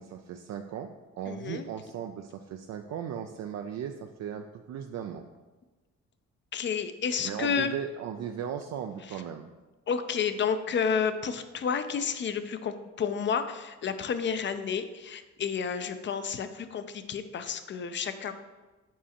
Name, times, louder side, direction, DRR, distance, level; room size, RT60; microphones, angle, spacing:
voice 1, 0.0-5.3 7.2-9.5, right 8 dB, 60° right, 5 dB, 0.4 m, -37 dB
voice 2, 1.3-1.6 6.5-7.7 9.9-18.3, left 6 dB, 40° left, 10 dB, 0.5 m, -30 dB
7.3 x 4.9 x 2.9 m, 1.2 s
cardioid pair, 90°, 30 cm